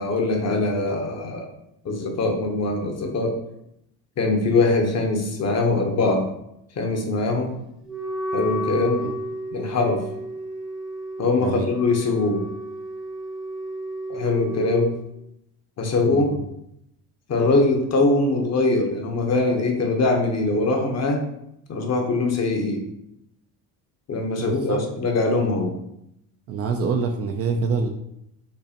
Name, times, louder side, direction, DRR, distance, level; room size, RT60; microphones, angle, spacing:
voice 1, 0.0-1.5 1.8-3.4 4.2-6.3 6.8-7.6 8.3-9.0 9.5-10.0 11.2-12.5 14.1-14.9 15.8-16.3 17.3-21.2 21.7-22.8 24.1-25.7, left 3 dB, 35° left, 3 dB, 0.8 m, -22 dB
Wind instrument woodwind instrument, 7.9-14.9, right 1 dB, ahead, 0.8 m, -32 dB
voice 2, 11.4-11.7 16.1-16.4 24.4-24.8 26.5-27.9, right 4 dB, 35° right, 4 dB, 0.4 m, -26 dB
5.3 x 2.1 x 2.8 m, 0.79 s
supercardioid pair, 90°, 44 cm